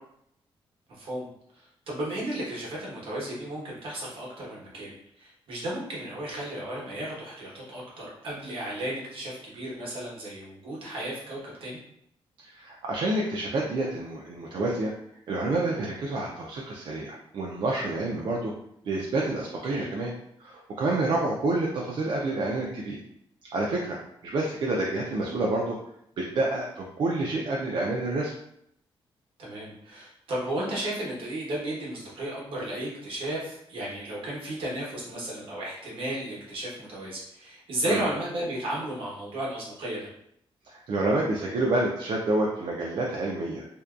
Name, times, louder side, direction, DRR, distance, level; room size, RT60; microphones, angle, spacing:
voice 1, 1.0-1.3 1.5-11.8 19.7-19.9 29.4-40.1, right 1 dB, 70° right, -5 dB, 1.0 m, -34 dB
voice 2, 12.4-14.9 15.3-18.5 18.8-20.1 20.4-23.0 23.5-25.8 26.2-28.3 37.9-38.1 40.6-43.7, right 2 dB, 55° right, -2 dB, 0.4 m, -28 dB
2.6 x 2.1 x 2.3 m, 0.73 s
wide cardioid pair, 150°, 10 cm